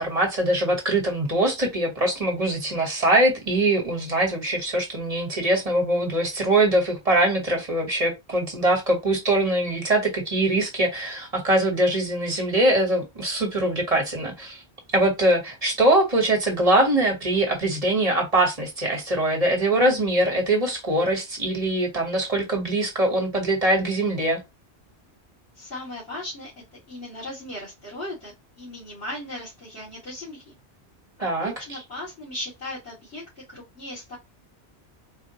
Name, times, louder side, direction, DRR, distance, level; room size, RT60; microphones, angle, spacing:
voice 1, 0.0-14.6 14.9-24.4 31.2-31.8, right 1 dB, 35° right, 1.1 m, -22 dB
voice 2, 25.5-26.5 26.9-30.5 31.2-34.2, left 1 dB, 75° left, 2.3 m, -37 dB
4.1 x 2.1 x 2.7 m
omnidirectional pair, 1.1 m